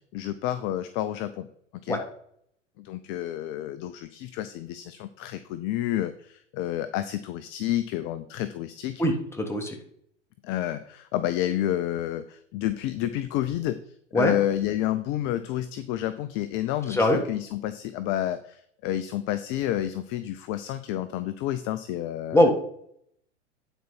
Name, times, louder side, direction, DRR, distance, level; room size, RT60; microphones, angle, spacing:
voice 1, 0.1-1.5 1.8-2.0 2.8-9.0 10.4-13.8 14.1-22.5, left 12 dB, 35° left, 12 dB, 0.5 m, -30 dB
voice 2, 9.0-9.8 14.1-14.3 16.9-17.2 22.3-22.5, left 1 dB, 5° left, 2 dB, 1.6 m, -21 dB
9.3 x 4.4 x 5.8 m, 0.68 s
figure-of-eight pair, 95°, 37 cm